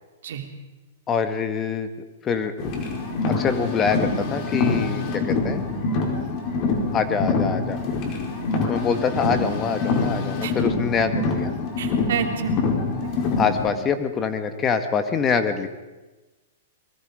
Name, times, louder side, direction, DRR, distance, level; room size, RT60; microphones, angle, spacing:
voice 1, 1.1-1.9 2.2-2.5 3.3-5.6 6.9-7.8 8.7-11.5 13.4-15.7, left 6 dB, 25° left, 9 dB, 1.7 m, -25 dB
Car, 2.6-13.7, left 3 dB, 40° left, 4.5 m, -25 dB
voice 2, 11.8-12.6, right 8 dB, 70° right, 3 dB, 3.3 m, -28 dB
23.5 x 22.0 x 5.1 m, 1.1 s
hypercardioid pair, 125°, 0 cm